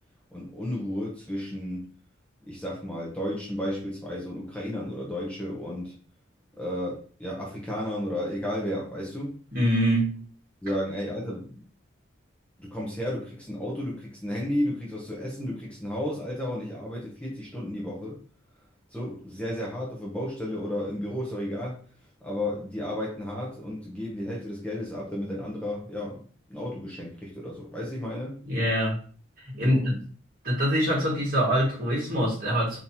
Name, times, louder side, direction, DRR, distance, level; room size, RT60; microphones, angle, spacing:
voice 1, 0.3-1.9 2.5-5.9 6.6-9.4 10.6-11.7 12.6-18.2 18.9-21.8 22.2-28.3 29.6-30.0, left 1 dB, 5° left, -4 dB, 0.6 m, -33 dB
voice 2, 9.5-10.1 28.5-29.0 29.4-29.9 30.4-32.8, equal, 45° right, -4 dB, 1.7 m, -24 dB
3.7 x 2.8 x 2.8 m, 0.42 s
head